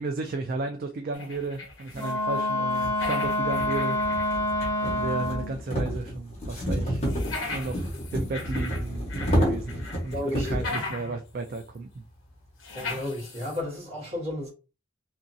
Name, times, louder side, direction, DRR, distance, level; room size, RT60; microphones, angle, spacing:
voice 1, 0.0-4.0 4.8-7.0 7.5-10.2 10.4-12.0, right 3 dB, 45° right, 0.3 m, -33 dB
sound 1, 1.1-2.2 2.5-4.9 5.3-5.4 7.0-9.4 9.7-11.2 11.5-11.6 12.6-13.6, left 3 dB, 80° left, 0.9 m, -38 dB
sound 2, 1.9-2.0 2.7-10.8, equal, 35° left, 1.2 m, -30 dB
Wind instrument woodwind instrument, 1.9-5.6, left 1 dB, 10° left, 0.5 m, -27 dB
voice 2, 10.1-10.7 12.7-14.5, left 1 dB, 30° right, 1.4 m, -33 dB
2.8 x 2.5 x 2.6 m
head